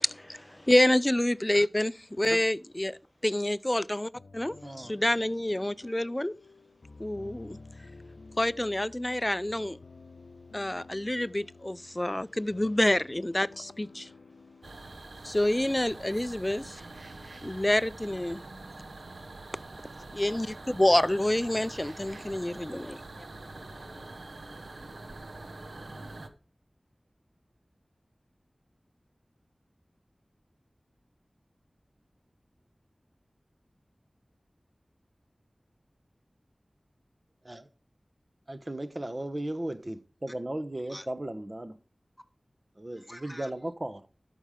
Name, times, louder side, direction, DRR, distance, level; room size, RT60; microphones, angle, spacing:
voice 1, 0.0-6.3 7.0-7.6 8.4-9.8 10.5-14.1 15.2-16.8 17.4-18.4 20.1-23.0, left 1 dB, 25° left, 0.4 m, -27 dB
sound 1, 4.2-15.9, left 3 dB, 90° left, 0.6 m, -52 dB
voice 2, 4.6-4.9 37.4-37.7 38.5-41.8 42.8-44.1, right 1 dB, 35° right, 0.9 m, -36 dB
sound 2, 14.6-26.3, right 2 dB, 85° right, 0.9 m, -45 dB
Guitar, 16.8-18.8, right 2 dB, 65° right, 1.9 m, -58 dB
voice 3, 22.7-24.2 40.9-41.1 43.0-43.5, equal, 5° left, 1.1 m, -49 dB
12.5 x 5.3 x 5.0 m
wide cardioid pair, 50°, 0 cm